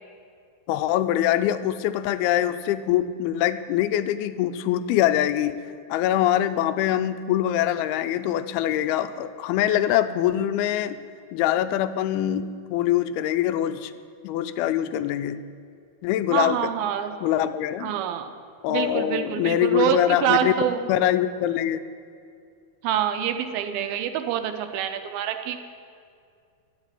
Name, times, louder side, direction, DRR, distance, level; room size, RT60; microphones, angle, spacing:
voice 1, 0.7-5.6 5.9-11.0 11.3-13.9 14.2-15.4 16.0-16.7 17.2-17.9 18.6-20.5 20.9-21.8, left 12 dB, 90° left, 12 dB, 2.5 m, -23 dB
voice 2, 16.3-17.1 17.8-18.3 18.7-20.8 22.8-25.6, right 9 dB, 85° right, 7 dB, 2.5 m, -26 dB
11.5 x 8.1 x 9.6 m, 2.3 s
omnidirectional pair, 4.4 m